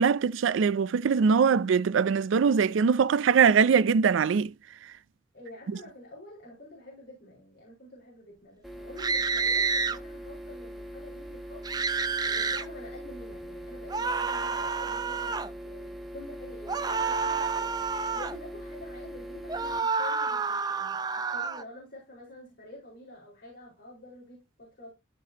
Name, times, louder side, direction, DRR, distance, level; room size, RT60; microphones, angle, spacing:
voice 1, 0.0-4.5, right 6 dB, 80° right, 0.4 m, -22 dB
voice 2, 5.3-24.9, left 1 dB, 60° left, 4.8 m, -48 dB
sound 1, 8.6-19.8, equal, ahead, 1.0 m, -42 dB
sound 2, 9.0-10.0 11.7-12.7 13.9-15.5 16.7-18.4 19.5-21.6, right 5 dB, 20° right, 0.5 m, -29 dB
14.0 x 5.0 x 2.9 m
head